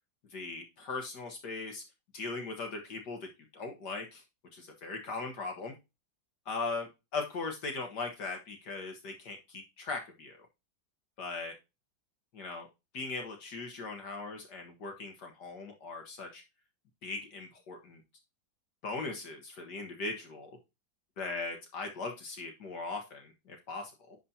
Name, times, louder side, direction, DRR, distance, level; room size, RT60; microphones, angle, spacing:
voice 1, 0.3-1.8 2.1-3.2 3.5-4.2 4.5-5.7 6.5-10.4 11.2-11.5 12.3-12.7 12.9-16.4 17.0-18.0 18.8-20.6 21.2-24.2, left 3 dB, 60° left, 4 dB, 1.8 m, -39 dB
11.0 x 4.2 x 2.7 m, 0.25 s
omnidirectional pair, 2.1 m